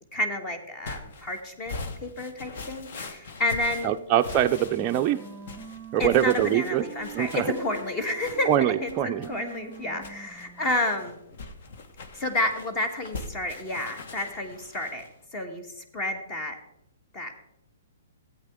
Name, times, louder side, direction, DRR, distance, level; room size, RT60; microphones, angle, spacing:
voice 1, 0.1-4.0 6.0-11.2 12.1-15.0 15.3-16.6 17.1-17.4, left 1 dB, 25° left, 6 dB, 1.3 m, -30 dB
sound 1, 0.8-15.2, left 3 dB, 60° left, 1.2 m, -42 dB
voice 2, 3.8-5.2 5.9-6.8 7.2-7.5 8.5-9.3, right 11 dB, 30° right, 4 dB, 0.4 m, -23 dB
Wind instrument woodwind instrument, 4.7-10.9, right 4 dB, ahead, 2.1 m, -43 dB
13.5 x 8.3 x 3.6 m, 0.83 s
hypercardioid pair, 140°, 0 cm